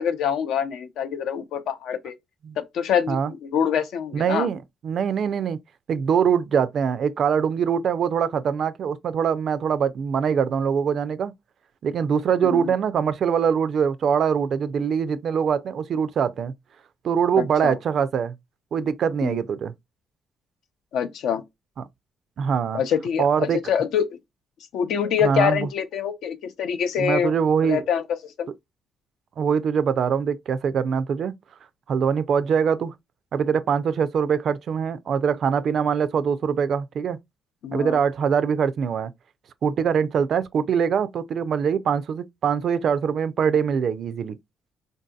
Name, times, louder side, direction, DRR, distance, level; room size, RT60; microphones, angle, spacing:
voice 1, 0.0-2.1 2.6-4.5 12.4-12.7 17.3-17.8 19.2-19.4 20.9-21.4 22.7-24.1 24.7-27.3 27.6-28.0 28.4-28.5 37.6-38.0, left 8 dB, 80° left, 0.5 m, -25 dB
voice 2, 4.1-5.6 5.9-11.3 11.8-16.5 17.0-18.3 18.7-19.7 22.4-22.8 23.2-23.6 25.2-25.7 27.0-27.8 29.4-31.3 31.9-32.9 33.3-37.2 37.7-39.1 39.6-44.4, right 7 dB, 60° right, 0.3 m, -23 dB
3.7 x 2.6 x 2.3 m
cardioid pair, 90°, 0 cm